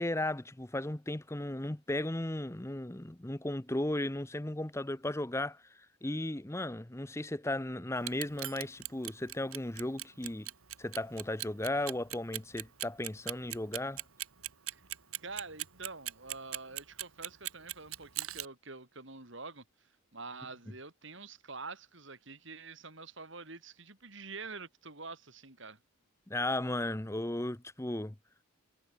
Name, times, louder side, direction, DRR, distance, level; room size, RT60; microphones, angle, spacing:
voice 1, 0.0-10.5 10.8-14.0 26.3-28.1, left 1 dB, 10° left, 0.7 m, -35 dB
Clock, 8.0-18.5, right 14 dB, 85° right, 4.7 m, -39 dB
voice 2, 15.2-19.6 20.1-25.8, right 3 dB, 55° right, 3.9 m, -46 dB
head